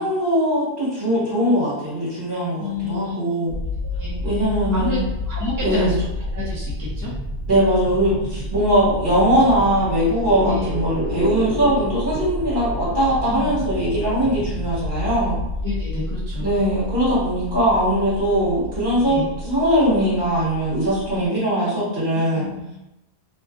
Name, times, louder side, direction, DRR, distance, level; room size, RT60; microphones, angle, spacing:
voice 1, 0.0-3.6 4.2-5.0 5.6-6.0 7.5-15.4 16.4-22.5, equal, 50° right, -9 dB, 1.3 m, -20 dB
voice 2, 2.6-3.2 3.8-4.2 4.7-5.0 5.3-7.1 10.4-10.7 13.3-13.5 15.6-16.5 19.0-19.3 22.3-22.6, left 4 dB, 25° left, -9 dB, 0.5 m, -29 dB
sound 1, 3.5-21.3, left 1 dB, 70° right, 0.9 m, -30 dB
sound 2, 9.8-13.6, left 2 dB, 55° left, 1.1 m, -34 dB
2.7 x 2.4 x 2.4 m, 0.91 s
omnidirectional pair, 1.1 m